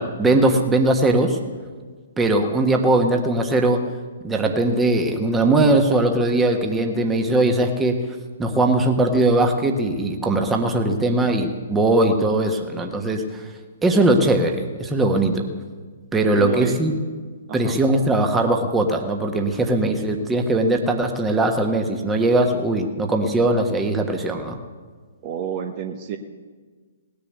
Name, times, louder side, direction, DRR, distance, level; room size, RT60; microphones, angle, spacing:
voice 1, 0.0-1.4 2.2-3.9 4.2-8.0 8.4-13.4 13.8-15.5 16.1-16.9 17.5-24.6, right 2 dB, 10° right, 3 dB, 1.4 m, -20 dB
voice 2, 16.3-16.8 17.5-17.8 25.2-26.2, right 8 dB, 35° right, 4 dB, 1.1 m, -30 dB
19.0 x 6.9 x 8.2 m, 1.5 s
figure-of-eight pair, 125°, 0 cm